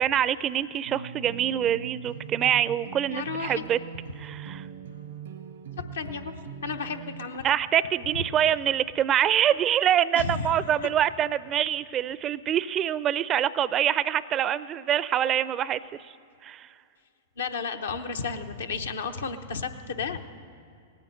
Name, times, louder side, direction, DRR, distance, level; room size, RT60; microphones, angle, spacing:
voice 1, 0.0-3.8 4.2-4.7 7.4-15.8 16.4-16.7, right 10 dB, 30° right, 17 dB, 0.4 m, -25 dB
sound 1, 0.8-7.3, right 7 dB, 80° right, 0.9 m, -41 dB
voice 2, 3.0-3.6 5.8-7.5 8.1-8.2 10.1-10.5 17.4-20.2, left 5 dB, 80° left, 6 dB, 0.8 m, -33 dB
18.0 x 9.1 x 7.8 m, 2.5 s
hypercardioid pair, 105°, 0 cm